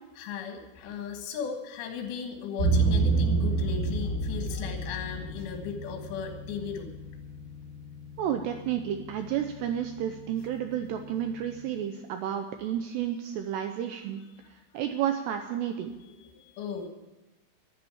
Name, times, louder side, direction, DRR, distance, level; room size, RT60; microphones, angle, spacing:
voice 1, 0.2-6.9 16.0-16.9, left 7 dB, 75° left, 4 dB, 4.0 m, -37 dB
sound 1, 2.6-11.6, right 3 dB, 40° right, 7.9 m, -31 dB
voice 2, 8.2-14.2 14.5-16.0, right 10 dB, 90° right, 6 dB, 2.5 m, -31 dB
11.0 x 11.0 x 8.5 m, 1.0 s
omnidirectional pair, 5.6 m